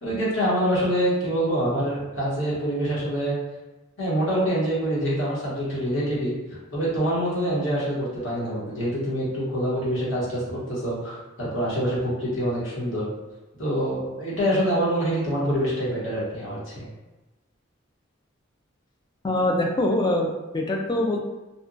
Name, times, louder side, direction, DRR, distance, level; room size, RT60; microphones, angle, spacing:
voice 1, 0.0-3.3 4.0-6.3 6.7-13.0 13.6-16.8, equal, 70° left, -7 dB, 1.1 m, -25 dB
voice 2, 19.2-21.2, left 1 dB, 20° left, 1 dB, 0.3 m, -24 dB
2.8 x 2.2 x 2.5 m, 1.1 s
head